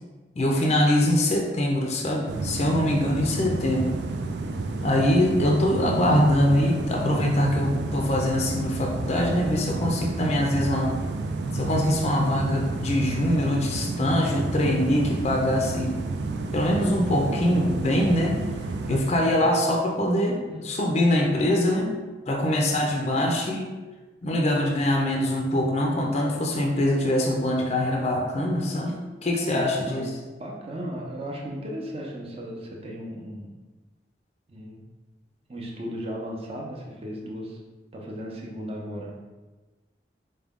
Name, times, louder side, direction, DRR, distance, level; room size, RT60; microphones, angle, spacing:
voice 1, 0.4-3.9 4.8-10.9 11.5-15.9 16.5-18.4 18.9-21.9 22.3-23.7 24.2-30.1, left 1 dB, 35° left, 0 dB, 0.4 m, -23 dB
sound 1, 2.3-19.0, right 3 dB, 70° right, 0.3 m, -30 dB
voice 2, 19.1-19.5 20.5-20.6 23.0-23.2 29.8-33.5 34.5-34.8 35.5-37.6 37.9-39.2, equal, 35° right, -2 dB, 0.6 m, -36 dB
4.7 x 2.2 x 3.5 m, 1.3 s
head